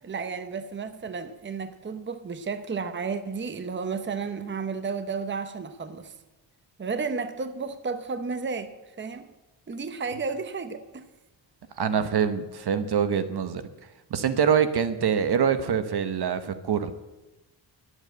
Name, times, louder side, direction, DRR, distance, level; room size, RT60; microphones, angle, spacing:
voice 1, 0.0-6.1 6.8-9.3 9.7-11.1, right 5 dB, 25° right, 0.8 m, -32 dB
voice 2, 11.8-13.6 14.1-16.9, right 7 dB, 60° right, 1.0 m, -24 dB
11.5 x 8.0 x 7.9 m
cardioid pair, 100°, 44 cm